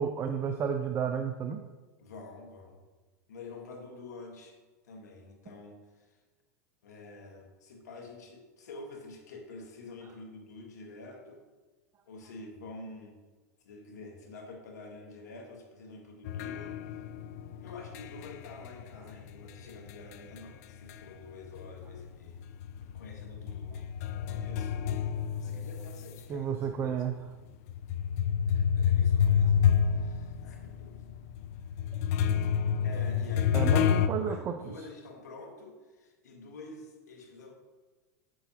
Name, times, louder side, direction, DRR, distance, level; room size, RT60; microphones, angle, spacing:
voice 1, 0.0-1.6 26.3-27.1 33.5-34.6, right 7 dB, 30° right, 7 dB, 0.4 m, -31 dB
voice 2, 2.0-2.8 3.3-4.6 4.8-6.2 6.8-11.4 12.1-13.2 13.6-16.8 17.6-22.4 22.9-24.8 25.3-27.0 28.5-29.6 29.9-31.0 32.8-33.8 34.1-37.5, left 3 dB, 85° left, 2 dB, 1.4 m, -48 dB
sound 1, 16.3-21.2 21.6-26.2 26.8-26.9 27.7-34.1, left 8 dB, 65° left, 0.4 m, -29 dB
8.1 x 6.2 x 2.8 m, 1.3 s
hypercardioid pair, 110°, 9 cm